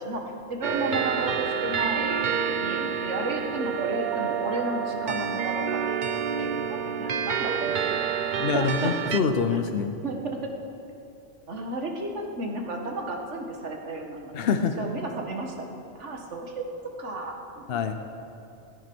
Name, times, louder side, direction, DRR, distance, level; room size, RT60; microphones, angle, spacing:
voice 1, 0.0-8.0 8.5-8.9 10.0-10.5 11.5-14.5 14.8-15.7 15.9-16.6 17.0-17.7, right 2 dB, 85° right, 2 dB, 2.0 m, -33 dB
sound 1, 0.6-9.2, right 7 dB, 50° right, 0.8 m, -28 dB
voice 2, 8.4-10.0 14.3-14.8 17.7-17.9, left 5 dB, 60° left, 7 dB, 1.0 m, -25 dB
16.5 x 14.0 x 6.2 m, 2.7 s
omnidirectional pair, 1.2 m